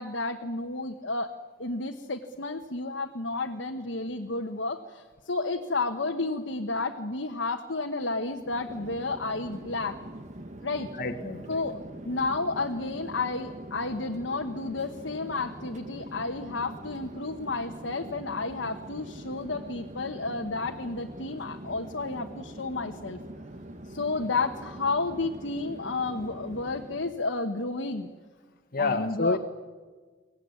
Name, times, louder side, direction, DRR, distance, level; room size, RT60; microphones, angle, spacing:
voice 1, 0.0-1.3 1.6-10.0 10.6-10.9 11.5-11.8 12.0-23.2 23.9-28.1 28.8-29.4, left 3 dB, 75° left, 3 dB, 1.2 m, -31 dB
Chatter / Fixed-wing aircraft airplane, 8.3-27.2, right 1 dB, 40° right, 1.4 m, -43 dB
voice 2, 11.0-11.6 28.7-29.4, left 3 dB, 50° left, 6 dB, 1.4 m, -29 dB
23.5 x 17.5 x 9.6 m, 1.5 s
head